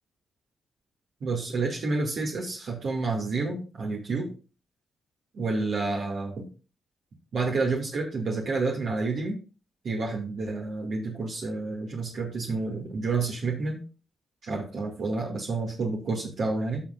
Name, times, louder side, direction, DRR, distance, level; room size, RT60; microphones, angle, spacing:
voice 1, 1.2-4.3 5.3-6.5 7.3-9.4 9.8-13.8 14.4-16.8, right 3 dB, 65° right, -1 dB, 2.2 m, -29 dB
14.5 x 5.8 x 2.5 m, 0.34 s
supercardioid pair, 50°, 0 cm